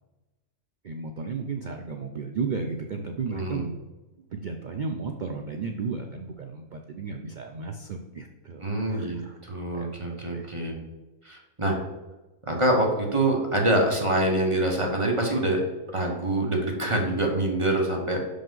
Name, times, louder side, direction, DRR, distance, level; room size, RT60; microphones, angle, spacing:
voice 1, 0.8-3.7 4.2-9.4 9.7-9.9 10.3-10.5, right 4 dB, 70° right, 4 dB, 0.4 m, -34 dB
voice 2, 3.3-3.7 8.6-10.8 11.2-11.8 12.5-15.6 15.9-18.2, right 1 dB, 25° right, 0 dB, 1.0 m, -25 dB
5.9 x 5.2 x 3.8 m, 1.1 s
omnidirectional pair, 1.4 m